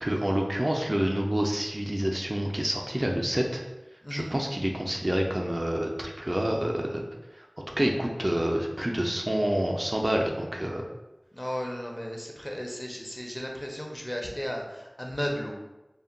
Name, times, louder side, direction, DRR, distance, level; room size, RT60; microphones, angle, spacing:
voice 1, 0.0-3.6 4.1-7.0 7.3-7.5 7.8-10.8, right 1 dB, 40° right, 0 dB, 0.3 m, -28 dB
voice 2, 11.3-15.5, equal, 25° left, 0 dB, 0.5 m, -34 dB
2.2 x 2.1 x 3.7 m, 1.0 s
wide cardioid pair, 40°, 0 cm